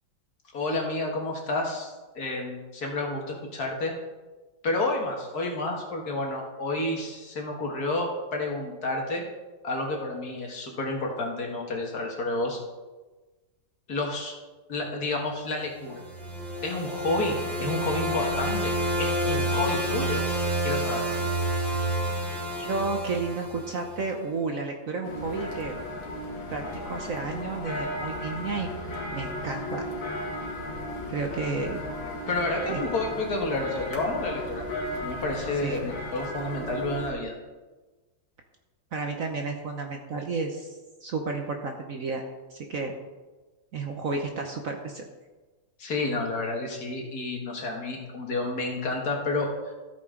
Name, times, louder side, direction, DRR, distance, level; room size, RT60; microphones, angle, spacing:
voice 1, 0.5-3.9 4.6-9.2 9.6-12.6 13.9-14.3 14.7-16.0 16.6-20.2 20.6-21.0 32.3-34.6 35.0-37.3 45.8-49.7, left 2 dB, 55° left, 0 dB, 2.1 m, -30 dB
sound 1, 15.8-24.0, right 1 dB, ahead, 2.5 m, -29 dB
voice 2, 22.6-25.8 26.5-28.7 29.1-29.8 31.1-31.8 32.7-32.8 35.6-35.8 38.9-42.2 42.5-42.9 43.7-45.0, right 4 dB, 55° right, 3 dB, 1.1 m, -32 dB
sound 2, 25.0-37.1, left 1 dB, 85° left, 2.6 m, -35 dB
14.0 x 8.5 x 3.8 m, 1.2 s
omnidirectional pair, 2.1 m